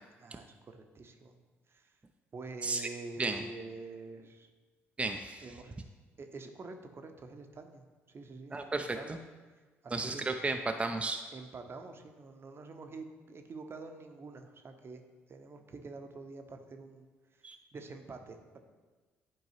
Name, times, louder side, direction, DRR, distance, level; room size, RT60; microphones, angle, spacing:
voice 1, 0.2-1.4 1.7-1.9 2.3-4.5 5.4-5.8 6.2-9.2 9.8-10.2 11.3-15.0 15.3-17.1 17.7-18.6, right 3 dB, 35° right, 6 dB, 0.8 m, -47 dB
voice 2, 5.0-5.5 8.5-9.0 9.9-11.2 17.4-17.6, right 3 dB, 15° right, 5 dB, 0.5 m, -33 dB
10.5 x 4.6 x 3.1 m, 1.3 s
figure-of-eight pair, 50°, 7 cm